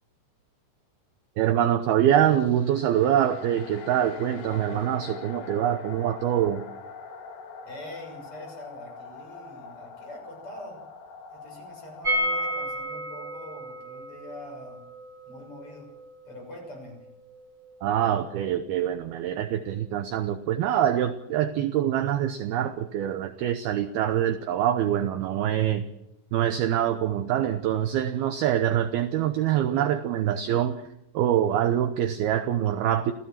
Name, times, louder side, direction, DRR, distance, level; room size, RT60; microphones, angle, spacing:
voice 1, 1.4-6.6 17.8-25.9 26.3-30.8 31.1-33.1, right 10 dB, 75° right, 10 dB, 2.4 m, -25 dB
sound 1, 2.2-12.7, left 4 dB, 90° left, 4.9 m, -43 dB
voice 2, 7.6-10.8 11.3-14.8 15.3-15.9 16.3-17.0, left 1 dB, 30° left, 2 dB, 7.5 m, -44 dB
sound 2, 12.0-17.8 18.1-18.2 18.4-18.5, equal, 20° right, 2.2 m, -33 dB
28.5 x 16.0 x 7.4 m, 0.86 s
omnidirectional pair, 5.4 m